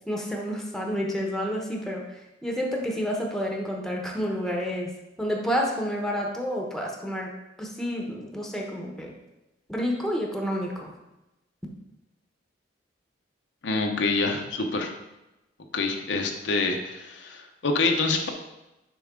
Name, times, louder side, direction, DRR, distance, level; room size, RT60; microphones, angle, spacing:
voice 1, 0.0-2.0 2.4-4.9 5.2-7.3 7.6-9.1 9.7-10.9, equal, ahead, -1 dB, 1.0 m, -29 dB
voice 2, 13.6-14.9 15.7-18.3, left 3 dB, 70° left, 3 dB, 0.8 m, -26 dB
6.9 x 5.3 x 3.7 m, 0.97 s
head